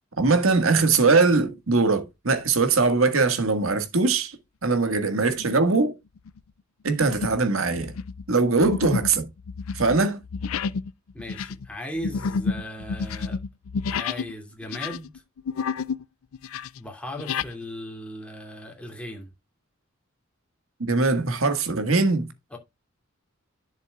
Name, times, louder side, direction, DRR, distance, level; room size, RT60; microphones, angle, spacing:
voice 1, 0.2-4.4 4.6-5.9 6.8-7.9 8.3-9.2 9.7-10.2 20.8-22.3, right 3 dB, 70° right, 1.7 m, -21 dB
sound 1, 5.3-5.6 6.2-6.4 7.0-7.5 7.7-14.3 14.6-16.0 16.3-17.5, left 5 dB, 75° left, 0.4 m, -30 dB
voice 2, 11.1-13.4 13.9-15.1 16.8-19.3 22.5-22.6, left 1 dB, 5° left, 2.5 m, -37 dB
11.0 x 7.3 x 2.3 m
head